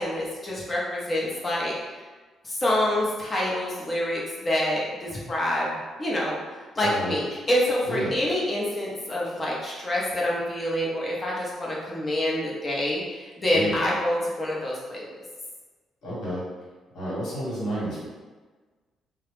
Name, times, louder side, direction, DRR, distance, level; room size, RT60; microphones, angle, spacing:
voice 1, 0.0-1.7 2.4-5.7 6.0-6.4 6.8-15.2, left 1 dB, 30° left, -5 dB, 0.7 m, -27 dB
voice 2, 6.8-7.1 7.9-8.1 13.5-13.8 16.0-16.4 16.9-18.1, right 1 dB, 70° left, -7 dB, 1.2 m, -30 dB
2.2 x 2.0 x 3.0 m, 1.3 s
cardioid pair, 90°, 0 cm